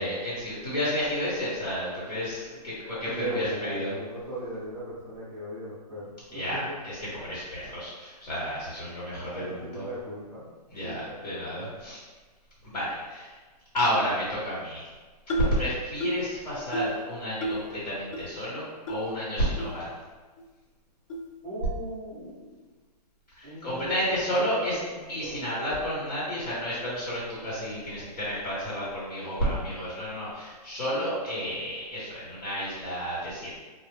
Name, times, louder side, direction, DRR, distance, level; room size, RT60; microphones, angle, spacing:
voice 1, 0.0-3.9 6.3-9.9 10.7-12.0 12.6-13.4 13.7-14.9 15.5-19.9 23.3-24.8 25.1-33.6, equal, 80° left, -9 dB, 1.3 m, -31 dB
voice 2, 3.0-6.8 9.4-10.5 10.8-11.4 15.3-15.7 21.4-22.7 23.4-23.9 24.3-25.5, right 1 dB, 5° left, -10 dB, 0.6 m, -38 dB
sound 1, 15.3-15.6 16.0-16.3 16.7-17.0 17.4-17.7 18.1-18.2 18.9-19.0 19.6-19.7 20.4-20.5 21.1-21.3, right 1 dB, 50° left, 0.4 m, -30 dB
2.3 x 2.0 x 3.4 m, 1.3 s
hypercardioid pair, 165°, 21 cm